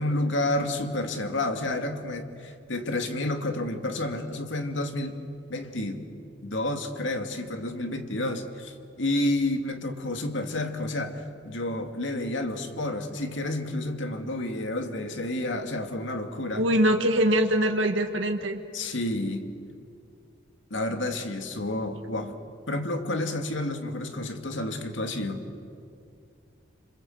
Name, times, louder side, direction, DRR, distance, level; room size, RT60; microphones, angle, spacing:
voice 1, 0.0-5.1 5.5-6.1 6.4-16.6 18.7-19.4 20.7-22.3 22.7-25.4, left 1 dB, 70° left, 5 dB, 2.4 m, -30 dB
voice 2, 16.6-18.6, equal, 80° right, 4 dB, 1.7 m, -23 dB
27.5 x 27.0 x 7.9 m, 2.4 s
head